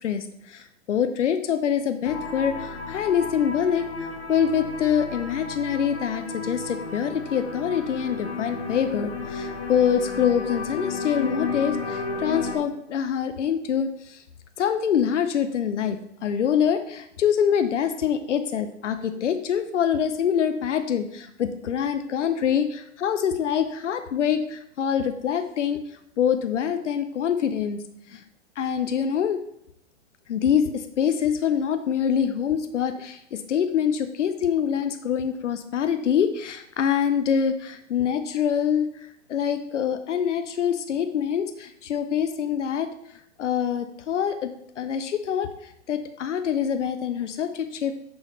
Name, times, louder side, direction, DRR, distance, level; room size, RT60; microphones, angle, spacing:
voice 1, 0.0-14.2 14.6-25.8 26.2-27.8 28.1-28.2 28.6-29.4 30.3-42.9 43.4-44.5 44.8-48.0, left 8 dB, 80° left, 9 dB, 0.6 m, -25 dB
sound 1, 2.0-12.6, left 4 dB, 60° left, 1.2 m, -33 dB
6.3 x 5.8 x 3.0 m, 0.77 s
hypercardioid pair, 115°, 36 cm